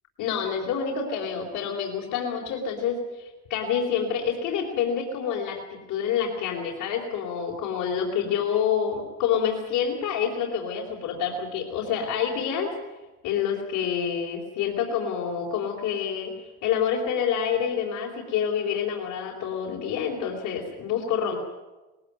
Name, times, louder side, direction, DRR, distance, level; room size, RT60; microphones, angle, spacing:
voice 1, 0.2-12.7 13.2-21.4, left 7 dB, 90° left, -3 dB, 4.0 m, -27 dB
21.5 x 16.5 x 9.2 m, 1.1 s
cardioid pair, 90°, 30 cm